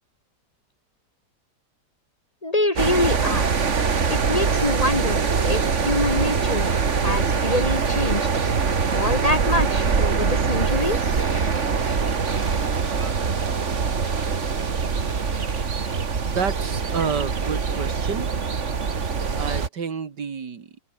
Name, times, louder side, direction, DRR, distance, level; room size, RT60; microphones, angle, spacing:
voice 1, 2.4-3.6 4.1-6.7 7.0-8.3 8.9-11.2, left 2 dB, 25° left, 1.4 m, -25 dB
sound 1, 2.8-19.7, right 5 dB, 45° right, 2.0 m, -23 dB
sound 2, 7.7-16.2, right 1 dB, 15° right, 5.2 m, -45 dB
voice 2, 16.3-18.3 19.4-20.7, right 6 dB, 90° right, 2.7 m, -29 dB
omnidirectional pair, 1.8 m